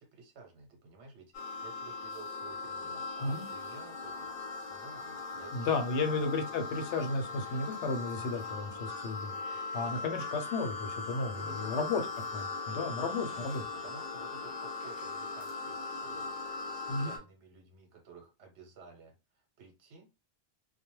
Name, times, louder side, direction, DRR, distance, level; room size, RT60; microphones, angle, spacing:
voice 1, 0.0-4.4 4.7-5.7 6.0-6.1 9.8-9.9 11.3-11.9 12.6-13.2 13.7-16.2 16.7-19.1 19.6-20.1, right 4 dB, 80° right, 2 dB, 1.1 m, -53 dB
sound 1, 1.3-17.2, left 4 dB, 50° left, 0.8 m, -39 dB
voice 2, 5.5-9.3 9.7-12.0 12.3-12.5 12.7-13.6 16.9-17.1, left 3 dB, 90° left, 6 dB, 0.9 m, -33 dB
2.3 x 2.2 x 3.0 m, 0.27 s
omnidirectional pair, 1.1 m